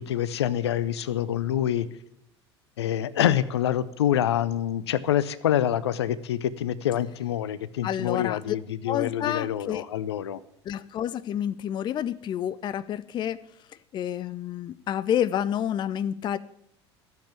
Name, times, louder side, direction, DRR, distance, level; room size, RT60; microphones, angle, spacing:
voice 1, 0.0-1.9 2.8-10.4, left 11 dB, 70° left, 0.7 m, -26 dB
voice 2, 7.8-8.6 8.9-9.8 10.7-13.4 13.9-16.4, left 10 dB, 30° left, 0.5 m, -29 dB
13.0 x 7.7 x 8.7 m
figure-of-eight pair, 70°, 15 cm